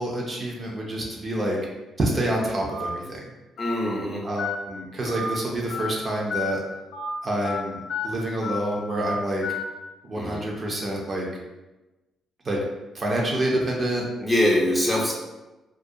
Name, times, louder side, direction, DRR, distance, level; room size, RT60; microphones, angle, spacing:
voice 1, 0.0-1.6 2.0-3.2 4.2-6.6 7.2-9.4 10.1-11.3 12.5-12.6 12.9-14.0, right 1 dB, 40° right, -2 dB, 0.5 m, -27 dB
Telephone, 2.7-2.9 3.6-3.7 4.4-4.6 5.1-5.3 5.7-5.9 6.3-6.5 6.9-7.1 7.4-7.6 7.9-8.1 8.4-8.6 8.9-9.1 9.4-9.6, left 5 dB, 75° left, 0.4 m, -30 dB
voice 2, 3.6-4.2 5.0-5.2 10.1-10.5 14.2-15.1, equal, 15° left, -3 dB, 0.6 m, -24 dB
2.3 x 2.2 x 2.6 m, 1.1 s
cardioid pair, 90°, 0 cm